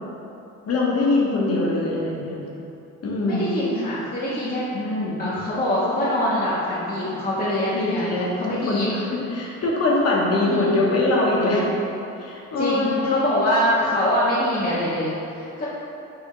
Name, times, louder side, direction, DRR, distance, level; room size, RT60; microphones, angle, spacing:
voice 1, 0.7-2.4 3.0-3.4 4.7-5.2 7.7-8.3 8.7-9.0 9.3-11.7 12.2-13.2, left 2 dB, 55° left, -4 dB, 1.0 m, -22 dB
voice 2, 3.2-4.6 5.2-8.1 8.4-8.9 10.4-10.8 12.6-15.7, left 1 dB, 30° left, -8 dB, 0.8 m, -24 dB
5.5 x 2.7 x 3.0 m, 2.8 s
cardioid pair, 90°, 30 cm